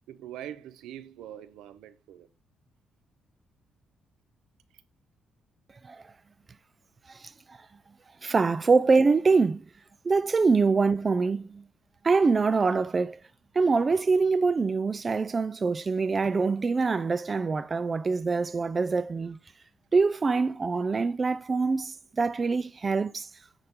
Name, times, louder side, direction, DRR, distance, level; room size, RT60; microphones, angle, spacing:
voice 1, 0.1-2.3, right 11 dB, 90° right, 0.7 m, -43 dB
voice 2, 7.1-7.6 8.2-9.6 10.0-11.6 12.0-13.2 13.5-19.4 19.9-23.3, right 4 dB, 30° right, 0.4 m, -24 dB
9.8 x 4.0 x 3.7 m
cardioid pair, 90°, 0 cm